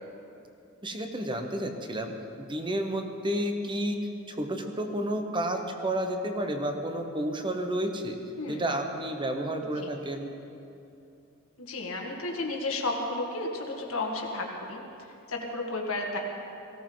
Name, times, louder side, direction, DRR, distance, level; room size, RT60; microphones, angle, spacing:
voice 1, 0.8-8.2 8.5-10.4, right 1 dB, 25° right, 5 dB, 1.1 m, -31 dB
voice 2, 11.6-14.8 15.3-16.2, left 2 dB, 85° left, 0 dB, 1.9 m, -32 dB
18.5 x 16.0 x 4.0 m, 2.7 s
head